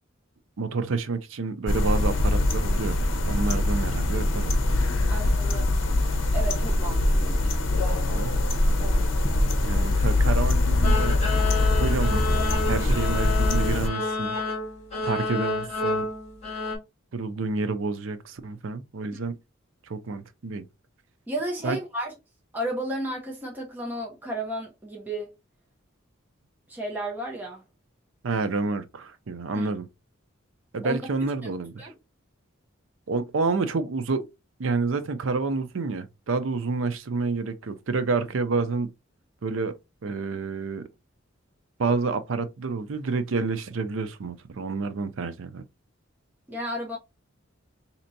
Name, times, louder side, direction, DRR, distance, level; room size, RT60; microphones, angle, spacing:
voice 1, 0.6-3.0 3.3-4.5 8.1-8.4 9.6-11.2 11.8-12.2 12.7-14.4 15.0-16.1 17.1-19.3 19.9-20.6 21.6-21.8 28.2-29.9 30.7-31.9 33.1-34.3 34.6-38.9 39.4-39.8 40.0-40.8 41.8-45.6, right 4 dB, 70° right, 0.5 m, -29 dB
sound 1, 1.7-13.9, left 2 dB, 65° left, 0.7 m, -23 dB
voice 2, 5.0-5.8 6.3-8.3 8.8-9.0 19.1-19.2 21.3-22.1 22.5-25.3 26.7-27.6 29.5-29.7 30.8-31.0 31.8-31.9 46.5-47.0, right 1 dB, 10° right, 0.7 m, -33 dB
sound 2, 10.8-16.8, left 3 dB, 30° left, 1.6 m, -30 dB
4.3 x 2.8 x 2.6 m
head